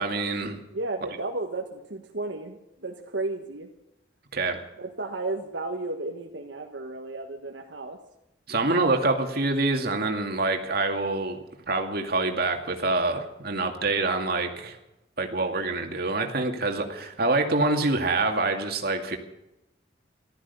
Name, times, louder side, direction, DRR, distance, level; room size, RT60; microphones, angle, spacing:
voice 1, 0.0-0.6 4.3-4.6 8.5-11.4 11.7-14.8 15.2-19.2, right 3 dB, 55° right, 4 dB, 2.3 m, -26 dB
voice 2, 0.6-3.7 4.8-8.0, right 2 dB, 70° right, 2 dB, 1.5 m, -33 dB
15.0 x 13.5 x 6.9 m, 0.89 s
head